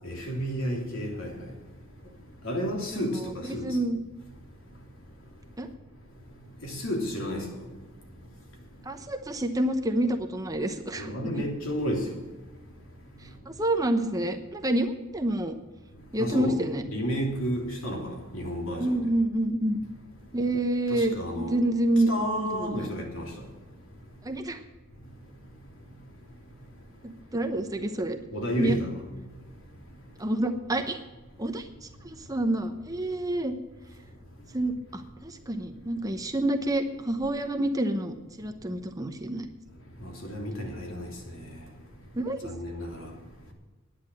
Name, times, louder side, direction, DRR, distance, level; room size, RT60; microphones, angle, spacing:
voice 1, 0.0-1.3 2.4-3.7 6.6-7.4 11.0-12.2 16.2-16.6 16.9-19.0 20.9-21.6 22.1-23.3 28.3-28.9 40.0-41.1 42.4-43.1, equal, 75° left, 2.9 m, -31 dB
voice 2, 2.9-4.0 5.6-5.7 8.8-11.3 13.5-15.6 16.1-16.8 18.8-19.8 20.3-22.1 22.4-22.9 24.2-24.6 27.0-28.2 28.6-28.8 30.2-31.0 31.4-33.5 34.5-39.5 42.2-42.5, right 1 dB, 15° right, 0.9 m, -28 dB
10.5 x 9.7 x 7.6 m
head